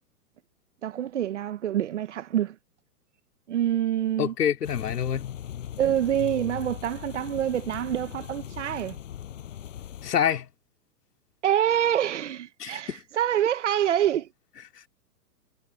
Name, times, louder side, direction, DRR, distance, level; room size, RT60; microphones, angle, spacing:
voice 1, 0.8-2.6 3.5-4.3 5.8-9.0 11.4-14.3, right 11 dB, 50° right, 1.1 m, -26 dB
voice 2, 4.2-5.3 10.0-10.5 12.6-13.0, left 9 dB, 85° left, 3.1 m, -26 dB
sound 1, 4.6-10.1, left 10 dB, 55° left, 6.3 m, -39 dB
hypercardioid pair, 180°, 46 cm